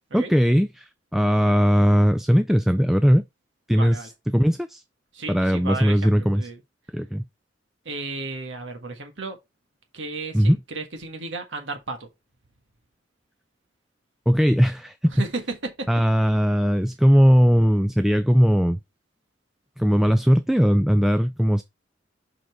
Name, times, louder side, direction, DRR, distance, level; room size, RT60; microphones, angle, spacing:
voice 1, 0.1-3.2 3.7-4.8 5.3-6.5 6.9-7.2 10.3-10.6 14.3-15.1 15.9-18.8 19.8-21.6, equal, ahead, 0.3 m, -19 dB
voice 2, 3.7-4.1 5.1-6.6 7.8-9.4 9.9-12.1 15.1-15.9, right 3 dB, 75° right, 1.6 m, -34 dB
5.7 x 5.1 x 4.6 m
head